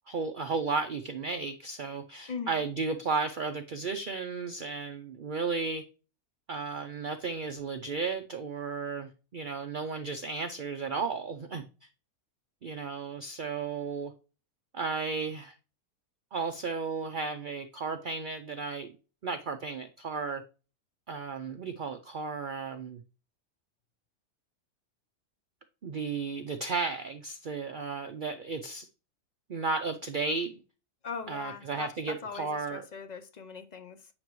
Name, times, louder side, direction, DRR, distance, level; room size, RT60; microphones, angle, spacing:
voice 1, 0.1-5.8 6.5-11.6 12.6-14.1 14.7-15.5 16.3-18.9 19.2-20.4 21.1-23.0 25.8-28.9 29.5-30.6 31.3-32.8, right 4 dB, 60° right, 0.5 m, -34 dB
voice 2, 2.3-2.6 31.0-34.1, left 5 dB, 55° left, 0.5 m, -40 dB
8.8 x 5.9 x 3.1 m
omnidirectional pair, 1.6 m